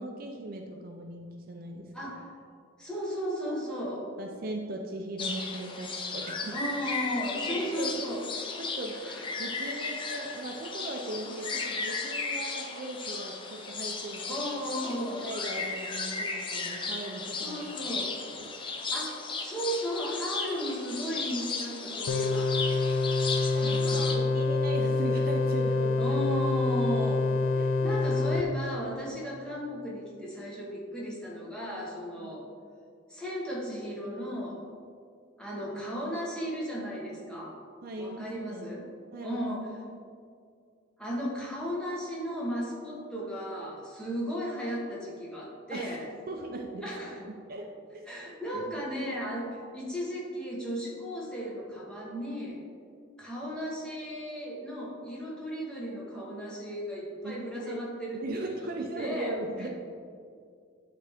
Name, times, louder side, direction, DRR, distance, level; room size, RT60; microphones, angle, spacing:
voice 1, 0.0-2.1 4.2-6.6 7.8-8.0 8.6-9.0 9.4-14.4 15.2-17.6 18.3-18.6 23.5-26.2 27.5-27.7 32.2-32.3 37.8-38.7 39.1-39.4 45.7-46.0 46.3-46.9 47.1-47.6 48.5-48.8 57.2-57.3 57.6-57.8 58.2-59.7, right 2 dB, 50° right, 2 dB, 0.5 m, -38 dB
voice 2, 1.9-2.3 2.8-4.1 6.5-8.3 9.0-9.2 14.3-15.3 17.4-18.2 18.9-22.6 23.6-24.2 26.0-27.3 27.8-32.4 33.1-34.6 35.4-37.6 37.9-38.9 39.2-39.7 41.0-46.1 46.8-47.2 48.1-52.6 53.2-59.7, equal, 5° left, -6 dB, 1.2 m, -35 dB
sound 1, 5.2-24.2, left 4 dB, 25° left, 0.5 m, -35 dB
sound 2, 22.1-28.4, left 3 dB, 85° left, 0.4 m, -26 dB
9.2 x 3.4 x 3.5 m, 2.3 s
head